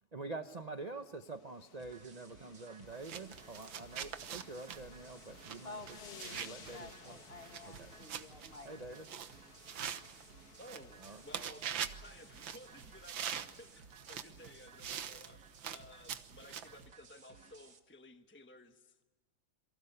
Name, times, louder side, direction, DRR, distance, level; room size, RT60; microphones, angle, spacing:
voice 1, 0.1-7.2 7.6-7.9 8.6-9.1 11.0-11.2, right 3 dB, 35° right, 8 dB, 0.6 m, -46 dB
sound 1, 1.0-14.2, left 7 dB, 55° left, 1.7 m, -58 dB
sound 2, 1.8-17.8, right 5 dB, 60° right, 2.2 m, -59 dB
sound 3, 2.9-16.9, right 8 dB, 80° right, 1.9 m, -45 dB
voice 2, 5.6-8.8, left 3 dB, 30° left, 6 dB, 1.9 m, -51 dB
voice 3, 10.6-19.0, left 1 dB, 10° left, 6 dB, 0.8 m, -56 dB
28.0 x 24.0 x 6.8 m, 1.2 s
omnidirectional pair, 2.1 m